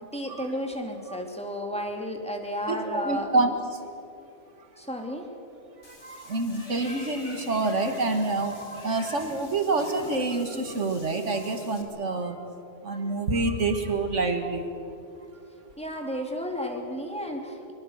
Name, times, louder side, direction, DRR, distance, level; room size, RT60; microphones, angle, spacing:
voice 1, 0.1-3.3 4.8-5.3 15.8-17.7, equal, 5° left, 2 dB, 2.9 m, -32 dB
voice 2, 2.7-3.5 5.9-12.4 12.8-14.7, right 3 dB, 85° right, 6 dB, 2.3 m, -27 dB
Water / Bathtub (filling or washing), 5.8-11.8, left 2 dB, 45° left, 2.6 m, -46 dB
24.0 x 23.5 x 6.6 m, 2.7 s
omnidirectional pair, 1.2 m